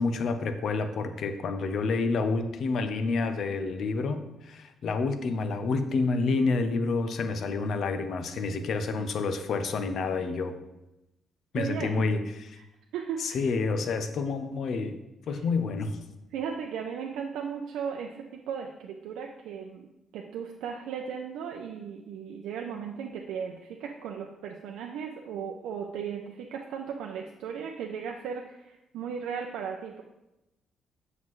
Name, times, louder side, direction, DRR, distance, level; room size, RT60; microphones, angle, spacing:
voice 1, 0.0-10.6 11.5-12.2 13.2-15.0 15.3-16.0, left 4 dB, 65° left, 8 dB, 0.7 m, -28 dB
voice 2, 11.5-12.0 12.6-12.7 12.9-13.4 16.3-30.0, right 7 dB, 90° right, 2 dB, 0.5 m, -36 dB
7.5 x 5.8 x 3.1 m, 0.94 s
cardioid pair, 90°, 0 cm